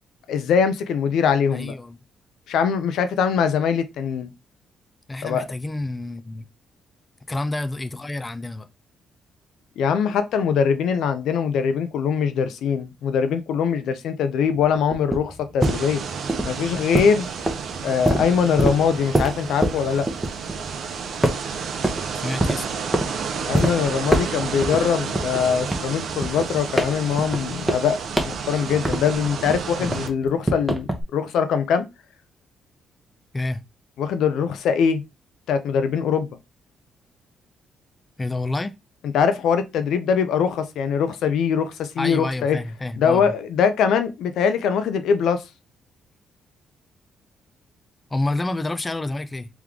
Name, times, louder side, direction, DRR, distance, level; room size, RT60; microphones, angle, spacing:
voice 1, 0.3-1.7 2.5-4.3 5.2-5.5 9.8-16.0 16.5-17.3 17.8-20.1 23.4-28.0 28.2-31.9 34.0-35.0 35.5-36.3 39.0-42.6 43.0-45.4, left 7 dB, 80° left, 0.5 m, -22 dB
voice 2, 1.5-2.0 5.1-6.5 7.3-8.7 22.2-22.7 29.8-29.9 33.3-33.6 38.2-38.7 42.0-43.3 48.1-49.5, left 2 dB, 20° left, 0.4 m, -28 dB
sound 1, 14.5-20.8 21.2-22.0 22.4-23.1 23.5-23.7 24.1-24.8 25.1-29.2 29.5-31.0, right 1 dB, 10° right, 0.9 m, -24 dB
sound 2, 15.6-30.1, right 6 dB, 65° right, 0.7 m, -31 dB
3.4 x 3.1 x 3.6 m
cardioid pair, 90°, 0 cm